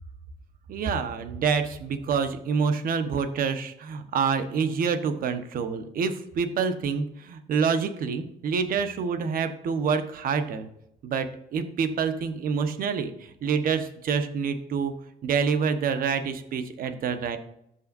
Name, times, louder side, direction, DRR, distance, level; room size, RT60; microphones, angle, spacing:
voice 1, 0.7-10.7 11.0-13.1 13.4-14.9 15.2-17.4, right 6 dB, 55° right, 8 dB, 1.2 m, -27 dB
14.5 x 5.7 x 2.6 m, 0.76 s
cardioid pair, 110°, 17 cm